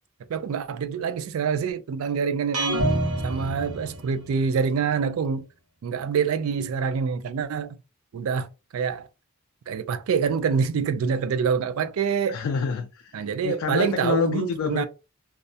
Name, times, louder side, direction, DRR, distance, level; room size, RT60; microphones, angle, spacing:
voice 1, 0.3-2.9 3.2-5.5 5.8-7.8 8.1-9.1 9.7-12.4 13.1-14.9, right 6 dB, 70° right, 0.3 m, -26 dB
sound 1, 2.5-4.5, right 1 dB, 90° right, 0.8 m, -27 dB
voice 2, 12.3-14.9, left 5 dB, 65° left, 0.3 m, -28 dB
2.4 x 2.0 x 2.6 m
head